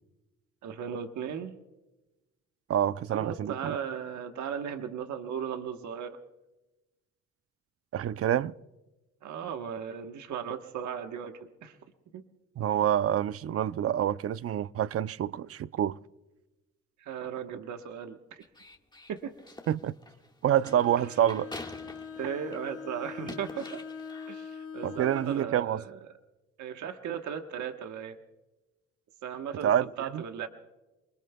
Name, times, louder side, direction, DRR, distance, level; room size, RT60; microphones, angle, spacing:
voice 1, 0.6-1.5 3.1-6.2 9.2-11.8 12.1-12.2 17.0-18.4 19.1-19.3 22.2-23.8 24.3-26.0 26.6-28.2 29.2-30.5, right 8 dB, 70° right, 1.2 m, -37 dB
voice 2, 2.7-3.7 7.9-8.5 12.6-16.0 19.7-19.9 20.4-21.5 24.8-25.8 29.6-29.8 30.1-30.2, right 10 dB, 50° right, 0.5 m, -27 dB
sound 1, 18.4-22.8 23.1-24.4, left 2 dB, 15° left, 1.6 m, -47 dB
Bowed string instrument, 20.6-25.6, left 6 dB, 85° left, 2.1 m, -43 dB
29.5 x 20.5 x 2.3 m
cardioid pair, 90°, 30 cm